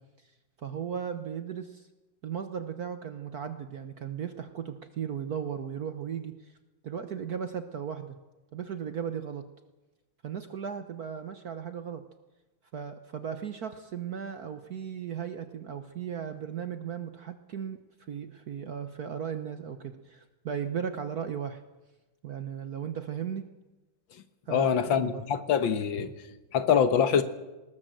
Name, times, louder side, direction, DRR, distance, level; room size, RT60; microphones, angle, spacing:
voice 1, 0.6-1.9 2.2-6.5 6.8-8.2 8.5-9.4 10.2-12.0 12.7-21.6 22.2-23.5 24.5-25.2, right 7 dB, 55° right, 9 dB, 1.3 m, -36 dB
voice 2, 24.5-26.1 26.5-27.2, left 7 dB, 70° left, 11 dB, 1.9 m, -24 dB
20.0 x 18.5 x 7.7 m, 1.1 s
omnidirectional pair, 2.3 m